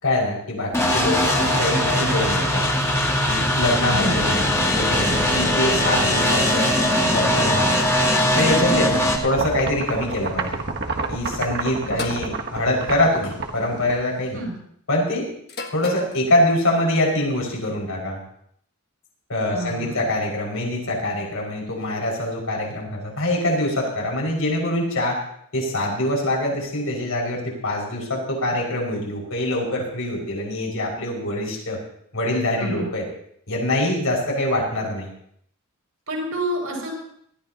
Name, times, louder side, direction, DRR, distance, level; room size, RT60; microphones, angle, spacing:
voice 1, 0.0-2.6 3.3-6.7 7.1-7.8 8.4-10.6 11.1-14.4 14.9-15.3 15.7-18.2 19.3-25.2 25.5-31.8 32.1-33.0 33.5-35.1, left 1 dB, 70° left, -2 dB, 5.9 m, -24 dB
sound 1, 0.7-9.2, left 1 dB, 15° left, 2.0 m, -20 dB
voice 2, 3.9-4.2 8.7-8.9 11.8-12.2 14.3-14.6 19.5-20.1 32.6-32.9 36.1-37.1, equal, 80° right, 0 dB, 5.8 m, -29 dB
sound 2, 8.2-14.3, right 3 dB, 50° right, 1.4 m, -30 dB
sound 3, 12.0-12.3 13.5-13.8 15.5-16.2, left 3 dB, 50° left, 1.5 m, -32 dB
19.5 x 14.5 x 2.9 m, 0.68 s
head